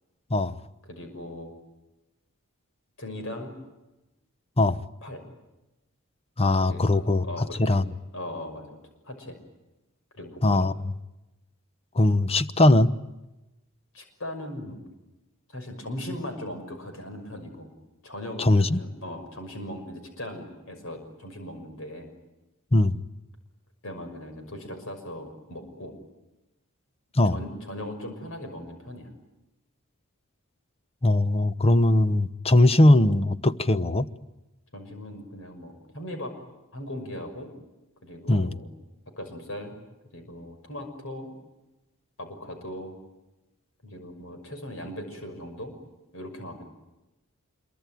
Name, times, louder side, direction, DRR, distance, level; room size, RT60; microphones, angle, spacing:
voice 1, 0.9-1.5 3.0-3.5 5.0-5.2 6.6-7.8 8.1-8.8 9.0-9.4 10.1-10.6 13.9-14.8 15.5-17.7 18.0-22.1 23.8-25.9 27.2-29.1 34.7-36.3 36.7-37.5 38.0-38.7 39.2-39.8 40.1-41.3 42.2-43.0 43.8-45.7 46.1-46.7, left 1 dB, 65° left, 6.0 m, -38 dB
voice 2, 6.4-7.8 10.4-10.7 11.9-12.9 18.4-18.8 22.7-23.0 27.2-27.4 31.0-34.1 38.3-38.5, left 1 dB, 30° left, 1.0 m, -20 dB
26.5 x 23.0 x 9.3 m
head